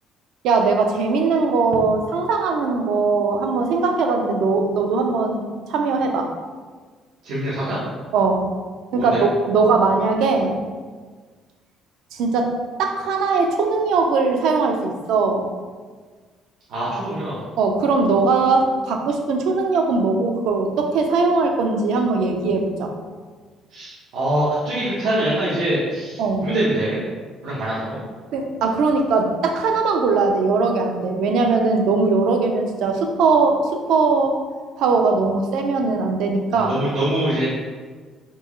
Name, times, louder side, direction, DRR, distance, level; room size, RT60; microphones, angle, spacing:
voice 1, 0.4-6.3 8.1-8.5 8.9-10.6 12.1-12.5 12.8-15.5 17.6-22.9 26.2-26.5 28.3-34.4 34.8-36.7, right 4 dB, 70° right, 3 dB, 0.5 m, -20 dB
voice 2, 7.2-7.8 8.9-9.2 16.7-17.4 23.7-27.0 27.4-28.0 36.5-37.4, right 1 dB, 90° right, -9 dB, 1.1 m, -24 dB
4.4 x 2.9 x 3.1 m, 1.5 s
cardioid pair, 170°, 0 cm